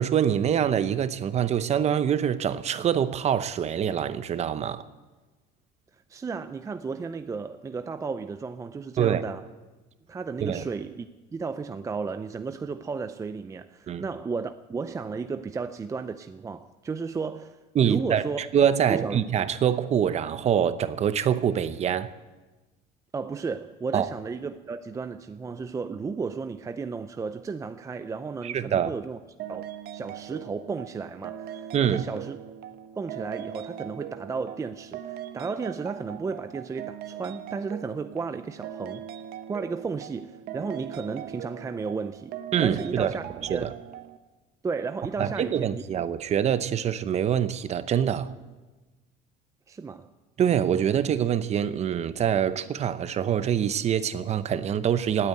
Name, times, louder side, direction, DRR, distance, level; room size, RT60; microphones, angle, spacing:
voice 1, 0.0-4.8 9.0-9.2 10.4-10.6 13.9-14.0 17.7-18.2 18.5-22.1 23.9-24.1 28.4-28.9 31.7-32.0 42.5-43.1 43.5-43.7 45.2-48.3 50.4-55.3, right 9 dB, 35° right, 0.8 m, -25 dB
voice 2, 6.1-9.4 10.1-11.1 11.3-18.4 18.9-19.2 23.1-29.2 29.5-32.4 33.0-39.0 39.5-42.4 42.6-43.7 44.6-45.8 49.7-50.1, right 4 dB, 15° right, 0.5 m, -33 dB
sound 1, 29.4-44.2, right 10 dB, 60° right, 1.0 m, -40 dB
17.5 x 8.8 x 8.9 m
cardioid pair, 125°, 18 cm